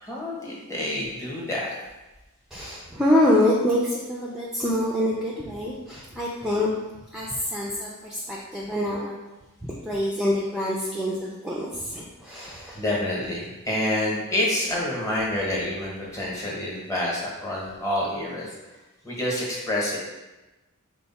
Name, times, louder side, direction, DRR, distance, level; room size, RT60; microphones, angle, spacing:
voice 1, 0.0-1.7 4.7-4.8 12.6-18.5 19.0-20.0, left 1 dB, 15° left, -4 dB, 0.9 m, -28 dB
voice 2, 2.5-6.7 7.1-9.2 9.6-12.8, left 1 dB, ahead, -5 dB, 0.3 m, -25 dB
4.5 x 2.1 x 4.0 m, 1.1 s
head